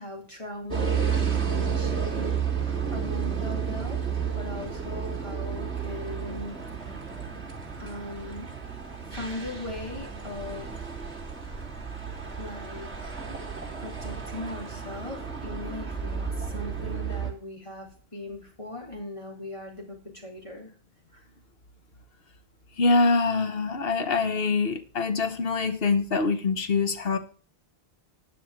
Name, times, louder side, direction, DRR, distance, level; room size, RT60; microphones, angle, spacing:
voice 1, 0.0-7.0 7.8-8.5 9.1-10.7 11.4-11.8 12.4-20.7 21.1-21.2, left 2 dB, 30° left, 3.5 m, -40 dB
sound 1, 0.7-17.3, right 7 dB, 5° left, 3.0 m, -32 dB
voice 2, 22.8-27.2, left 3 dB, 65° left, 1.3 m, -24 dB
10.5 x 5.9 x 7.2 m
omnidirectional pair, 1.1 m